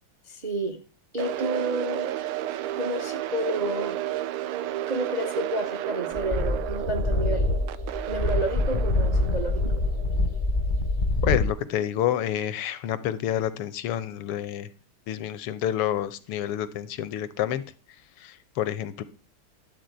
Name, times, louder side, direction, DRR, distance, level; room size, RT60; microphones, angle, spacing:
voice 1, 0.3-0.8 1.1-2.1 2.7-4.0 4.9-7.5 8.0-9.7, right 1 dB, 45° right, 5 dB, 0.5 m, -30 dB
sound 1, 1.2-11.2, right 13 dB, 80° right, 1.5 m, -33 dB
sound 2, 6.1-11.5, left 2 dB, 40° left, 0.7 m, -25 dB
voice 2, 11.2-14.7 15.1-17.6 18.2-19.0, left 11 dB, 85° left, 13 dB, 1.8 m, -28 dB
12.0 x 4.0 x 8.0 m, 0.38 s
omnidirectional pair, 2.4 m